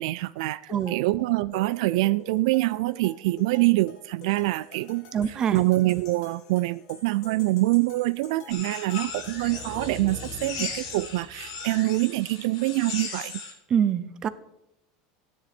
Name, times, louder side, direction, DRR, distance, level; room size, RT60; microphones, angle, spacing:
voice 1, 0.0-5.1 5.5-13.4, right 19 dB, 65° right, 0.3 m, -25 dB
sound 1, 0.7-11.3, left 4 dB, 60° left, 2.7 m, -49 dB
voice 2, 0.7-1.0 5.1-5.6 13.7-14.3, right 8 dB, 25° right, 0.7 m, -25 dB
sound 2, 8.5-13.5, left 5 dB, 85° left, 5.3 m, -37 dB
sound 3, 8.9-11.9, left 1 dB, 20° left, 1.2 m, -43 dB
15.5 x 10.0 x 4.4 m
supercardioid pair, 170°, 3 cm